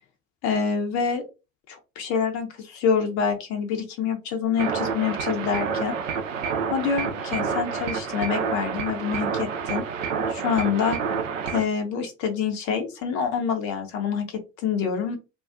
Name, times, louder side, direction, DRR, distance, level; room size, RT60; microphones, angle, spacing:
voice 1, 0.4-1.2 1.7-6.0 6.7-9.8 10.3-11.0 11.5-15.2, left 6 dB, 50° left, 4 dB, 0.6 m, -26 dB
sound 1, 4.6-11.6, right 6 dB, 80° right, 0.5 m, -28 dB
2.3 x 2.2 x 2.4 m, 0.29 s
figure-of-eight pair, 60°, 38 cm